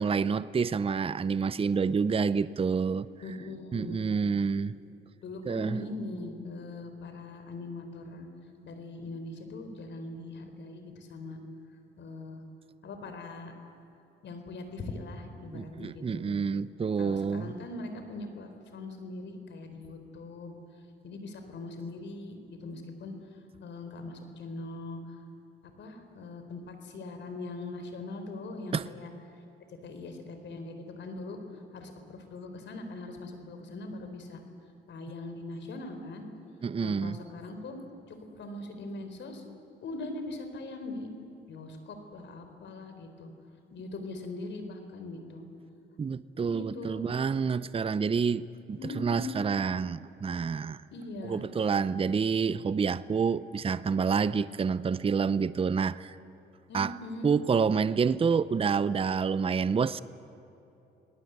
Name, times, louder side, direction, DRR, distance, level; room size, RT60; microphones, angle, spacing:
voice 1, 0.0-3.1 3.7-4.7 5.4-5.8 15.5-17.5 28.7-28.9 36.6-37.2 46.0-48.4 48.7-50.8 51.3-56.1 56.7-56.9 57.2-60.0, right 5 dB, 30° right, 0.7 m, -28 dB
voice 2, 3.2-4.0 5.2-8.3 8.6-11.4 12.0-12.4 12.8-13.5 14.2-16.4 17.0-20.6 21.0-25.0 25.8-29.1 29.8-31.4 31.7-34.4 34.9-36.3 36.8-37.8 38.1-39.4 39.8-41.1 41.5-43.3 43.7-45.4 46.5-47.1 48.8-49.4 50.9-51.5 56.7-57.3, left 2 dB, 65° left, 4.2 m, -41 dB
30.0 x 19.0 x 8.1 m
cardioid pair, 90°, 20 cm